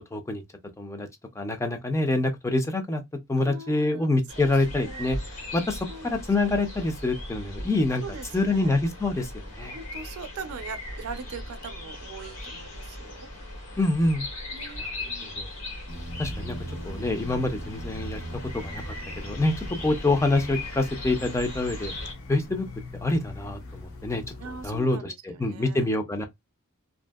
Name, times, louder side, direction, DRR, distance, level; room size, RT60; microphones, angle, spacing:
voice 1, 0.1-0.4 0.8-1.1 1.4-3.0 3.3-5.2 5.5-8.0 8.3-9.7 13.8-14.3 14.8-14.9 15.2-15.5 16.2-16.6 16.8-18.2 18.5-21.9 22.3-22.7 23.0-26.2, left 2 dB, 15° left, 0.4 m, -26 dB
voice 2, 3.4-5.1 5.9-6.2 8.0-8.7 9.6-13.3 14.5-15.3 24.4-25.9, right 4 dB, 90° right, 0.4 m, -41 dB
sound 1, 4.3-22.1, left 1 dB, 90° left, 1.5 m, -38 dB
sound 2, 15.9-24.8, left 1 dB, 75° left, 0.8 m, -40 dB
2.6 x 2.6 x 2.2 m
head